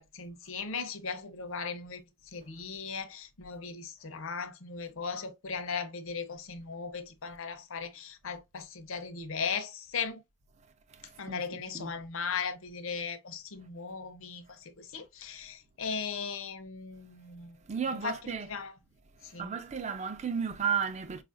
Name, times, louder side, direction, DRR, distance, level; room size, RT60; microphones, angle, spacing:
voice 1, 0.0-2.0 2.3-10.2 11.2-17.6 17.9-18.2 18.4-18.8 19.3-19.6, left 5 dB, 75° left, 0.6 m, -37 dB
voice 2, 11.3-12.0 17.7-18.5 19.4-21.2, right 6 dB, 30° right, 0.4 m, -33 dB
4.8 x 2.4 x 2.5 m
head